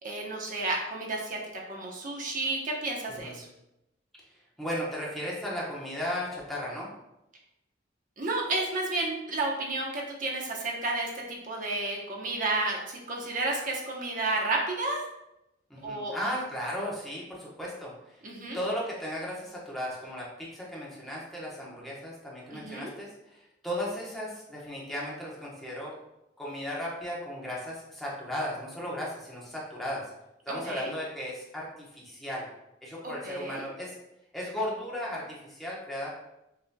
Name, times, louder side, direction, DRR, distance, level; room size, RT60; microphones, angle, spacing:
voice 1, 0.0-1.4 1.7-3.5 8.2-15.0 15.8-16.1 18.2-18.6 22.5-22.9 30.5-30.9 33.0-33.6, right 2 dB, 45° right, -1 dB, 0.9 m, -31 dB
voice 2, 4.3-6.9 15.7-18.3 18.5-25.9 26.4-30.0 30.5-32.5 32.8-33.9 34.3-36.1, equal, ahead, -6 dB, 1.1 m, -36 dB
6.7 x 3.2 x 2.3 m, 0.88 s
head